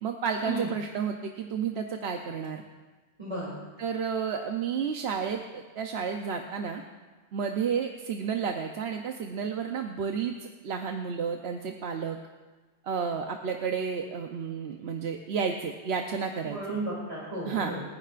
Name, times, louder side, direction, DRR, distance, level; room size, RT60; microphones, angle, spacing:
voice 1, 0.0-2.6 3.8-6.8 7.3-10.3 10.6-12.2 12.9-16.6 17.5-17.7, right 6 dB, 75° right, 4 dB, 1.0 m, -31 dB
voice 2, 3.2-3.6 16.4-17.8, right 2 dB, 30° right, -7 dB, 2.8 m, -34 dB
29.5 x 10.0 x 2.5 m, 1.3 s
omnidirectional pair, 1.1 m